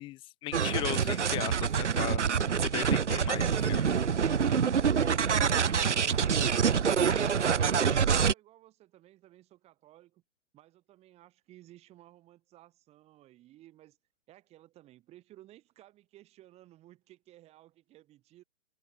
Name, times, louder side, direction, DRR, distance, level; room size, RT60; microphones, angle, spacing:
voice 1, 0.0-2.2 2.6-3.9, left 17 dB, 15° left, 1.7 m, -37 dB
sound 1, 0.5-8.3, right 7 dB, 60° right, 0.9 m, -26 dB
voice 2, 5.0-10.2 10.5-14.0 14.3-18.4, right 15 dB, 15° right, 7.6 m, -57 dB
figure-of-eight pair, 135°, 39 cm